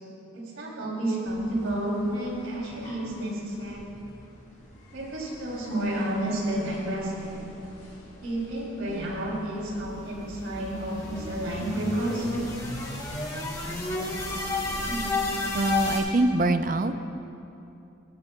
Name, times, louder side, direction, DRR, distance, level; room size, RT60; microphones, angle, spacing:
voice 1, 0.3-3.9 4.9-7.4 8.2-12.3 14.9-15.0, right 1 dB, 85° right, -3 dB, 2.9 m, -30 dB
sound 1, 1.2-16.4, equal, 40° left, 2.3 m, -45 dB
sound 2, 9.6-16.0, left 3 dB, 15° left, 1.5 m, -32 dB
voice 2, 15.5-17.0, right 2 dB, 40° right, 10 dB, 0.4 m, -24 dB
17.0 x 15.5 x 2.2 m, 2.8 s
head